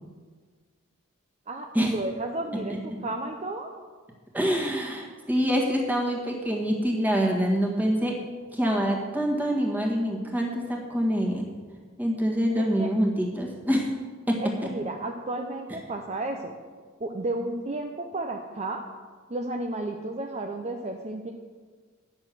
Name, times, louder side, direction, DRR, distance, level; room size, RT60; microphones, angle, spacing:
voice 1, 1.5-3.7 12.8-12.9 14.4-16.5 17.0-18.8 19.3-21.3, right 2 dB, 30° right, 3 dB, 0.6 m, -32 dB
voice 2, 4.3-8.3 8.5-11.5 12.0-13.9 14.3-14.7, equal, 10° right, -1 dB, 1.7 m, -25 dB
10.0 x 6.6 x 7.6 m, 1.5 s
head